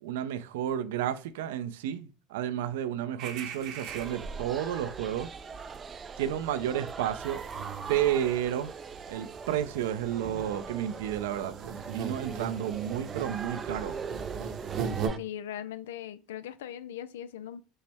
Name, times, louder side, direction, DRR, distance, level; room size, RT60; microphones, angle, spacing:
voice 1, 0.0-5.3 6.2-7.4 7.9-8.7 9.1-14.0, right 10 dB, 80° right, 0.5 m, -31 dB
sound 1, 3.2-4.8 5.1-5.3 5.6-15.1, right 7 dB, 55° right, 0.8 m, -40 dB
sound 2, 3.9-15.2, right 5 dB, 25° right, 0.3 m, -41 dB
voice 2, 15.2-17.6, left 10 dB, 90° left, 0.3 m, -39 dB
5.3 x 2.0 x 3.4 m
supercardioid pair, 105°, 0 cm